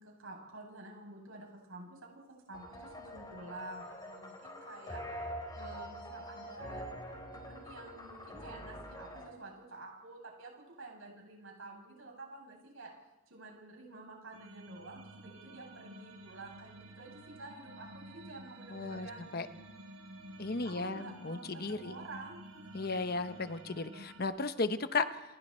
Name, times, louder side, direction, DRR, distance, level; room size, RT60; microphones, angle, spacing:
voice 1, 0.0-2.0 2.5-6.8 7.3-12.9 13.3-19.2 20.6-22.6, right 2 dB, 70° right, 0 dB, 8.0 m, -50 dB
sound 1, 2.5-9.3, equal, 20° left, 4.2 m, -45 dB
sound 2, 14.3-24.2, right 1 dB, 85° right, 3.8 m, -52 dB
voice 2, 18.7-19.1 19.3-19.5 20.4-21.9 22.7-25.2, left 3 dB, 45° left, 10 dB, 0.9 m, -35 dB
29.0 x 21.5 x 4.4 m, 1.1 s
head